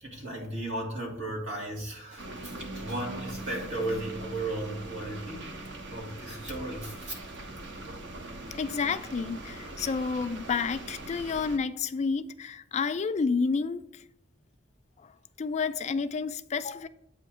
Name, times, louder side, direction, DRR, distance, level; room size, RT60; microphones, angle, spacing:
voice 1, 0.0-5.5 5.9-7.4, right 1 dB, 85° right, 2.1 m, -35 dB
sound 1, 2.2-11.6, right 2 dB, 65° right, 0.8 m, -41 dB
voice 2, 8.5-14.0 15.0-15.1 15.4-16.9, left 5 dB, 35° left, 0.3 m, -30 dB
8.4 x 2.8 x 6.0 m
head